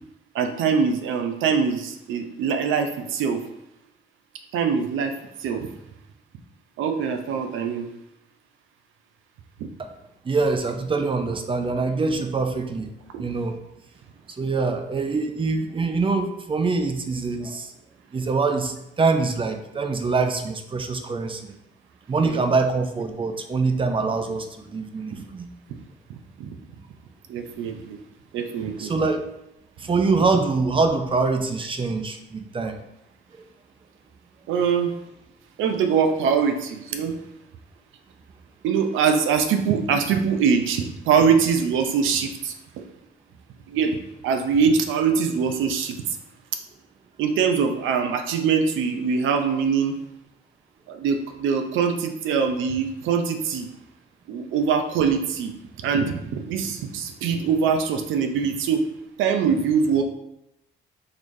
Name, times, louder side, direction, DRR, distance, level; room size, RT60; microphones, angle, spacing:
voice 1, 0.3-3.4 4.5-5.7 6.8-7.9 13.1-13.2 22.2-22.4 25.2-25.3 26.1-26.5 27.3-28.0 28.3-28.9 34.5-34.9 35.6-37.2 38.6-42.8 43.7-44.0 44.2-46.2 47.2-50.0 50.9-53.7 54.3-58.8 59.2-60.0, right 6 dB, 80° right, 6 dB, 0.5 m, -23 dB
voice 2, 10.3-12.9 13.2-13.6 14.4-17.7 18.1-21.5 22.1-25.5 28.8-29.2 29.8-32.8, right 4 dB, 25° right, 6 dB, 0.4 m, -24 dB
3.9 x 3.2 x 2.6 m, 0.84 s
cardioid pair, 90°, 20 cm